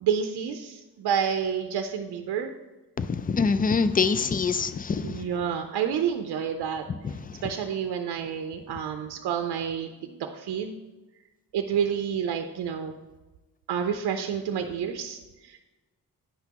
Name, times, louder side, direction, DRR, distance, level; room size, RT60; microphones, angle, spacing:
voice 1, 0.0-2.5 5.0-6.8 7.4-10.7 11.5-13.0 13.7-15.6, right 7 dB, 80° right, 6 dB, 0.6 m, -29 dB
voice 2, 3.0-5.2 6.9-7.0, left 5 dB, 25° left, 12 dB, 0.4 m, -25 dB
9.5 x 5.9 x 2.9 m, 1.1 s
cardioid pair, 70°, 39 cm